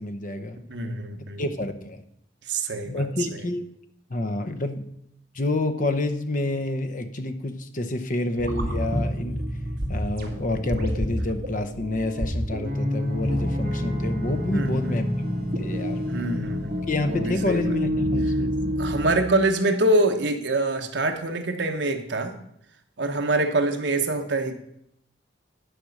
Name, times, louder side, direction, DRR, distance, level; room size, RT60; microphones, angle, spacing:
voice 1, 0.0-0.6 1.4-2.0 2.9-3.6 4.1-4.9 5.3-9.4 9.9-15.1 15.4-16.0 16.9-18.6, left 2 dB, 45° left, 9 dB, 0.8 m, -28 dB
voice 2, 0.7-1.4 2.5-3.4 14.5-15.0 16.1-17.8 18.8-22.3 23.0-24.5, right 2 dB, 70° right, 5 dB, 1.1 m, -25 dB
sound 1, 8.4-19.2, equal, 50° right, 1.8 m, -28 dB
10.5 x 5.1 x 6.5 m, 0.75 s
head